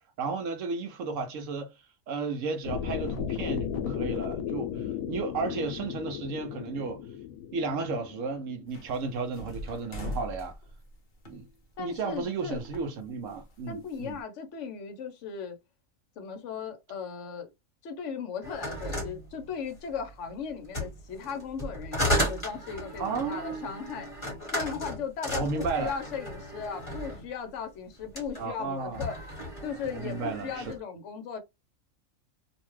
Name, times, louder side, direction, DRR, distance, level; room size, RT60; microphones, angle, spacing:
voice 1, 0.2-1.7 2.1-7.0 7.5-10.6 11.3-11.5 11.8-14.2 23.0-23.7 25.3-25.9 28.4-29.1 29.9-30.6, right 4 dB, 70° right, 0.9 m, -33 dB
sound 1, 2.6-8.8, left 8 dB, 85° left, 1.0 m, -35 dB
sound 2, 8.7-12.2 12.5-14.2, left 1 dB, 45° left, 0.9 m, -41 dB
voice 2, 11.8-12.6 13.7-15.6 16.2-17.5 17.8-24.1 24.5-29.1 29.6-31.4, left 6 dB, 65° left, 1.1 m, -37 dB
sound 3, 18.4-20.0 20.6-27.3 28.0-28.4 28.8-30.8, equal, 20° left, 1.4 m, -34 dB
2.7 x 2.2 x 3.0 m
omnidirectional pair, 1.4 m